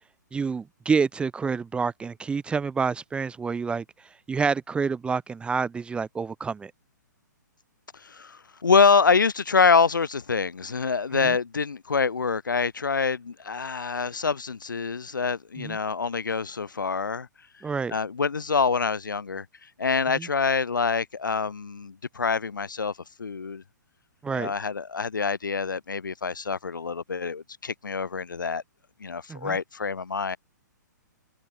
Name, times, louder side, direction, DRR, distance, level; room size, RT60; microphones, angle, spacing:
voice 1, 0.3-3.8 4.3-6.7 11.2-11.4 15.6-15.8 17.6-17.9 20.1-20.3 24.2-24.5 29.3-29.6, right 5 dB, 10° right, 0.8 m, -28 dB
voice 2, 8.0-17.3 17.9-19.4 19.8-22.9 23.2-23.6 24.3-28.6 29.0-30.4, left 5 dB, 80° left, 5.0 m, -25 dB
open air
hypercardioid pair, 125°, 10 cm